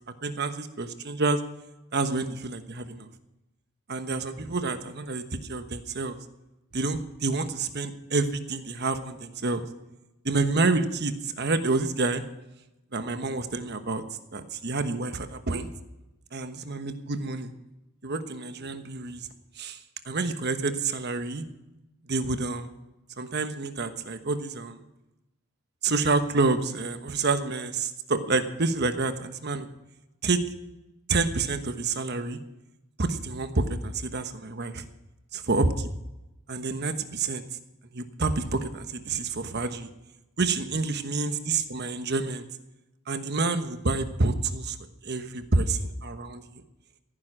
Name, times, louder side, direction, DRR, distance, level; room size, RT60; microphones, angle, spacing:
voice 1, 0.2-1.4 1.9-3.1 3.9-5.2 5.5-6.1 6.7-9.6 10.2-12.2 12.9-14.0 14.3-15.7 16.3-17.5 18.0-19.3 19.6-19.8 20.0-21.4 22.1-22.7 23.2-24.8 25.8-29.7 30.2-30.4 31.1-32.4 33.0-34.8 35.3-35.9 36.5-37.4 37.9-39.9 40.4-42.5 43.1-44.8 45.0-46.6, right 3 dB, 50° right, 9 dB, 1.2 m, -28 dB
15.5 x 10.0 x 6.2 m, 0.94 s
head